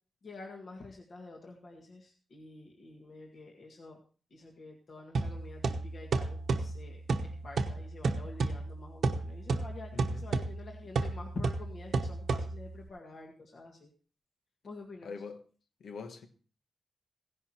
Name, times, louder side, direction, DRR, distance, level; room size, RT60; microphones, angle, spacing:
voice 1, 0.2-4.0 4.3-13.9 14.6-15.1, left 2 dB, 55° left, 2.0 m, -48 dB
sound 1, 5.1-12.9, right 3 dB, 70° right, 1.0 m, -33 dB
voice 2, 9.9-10.2 15.0-15.4 15.8-16.3, left 5 dB, 85° left, 1.3 m, -43 dB
16.5 x 11.0 x 2.9 m
wide cardioid pair, 125°, 0 cm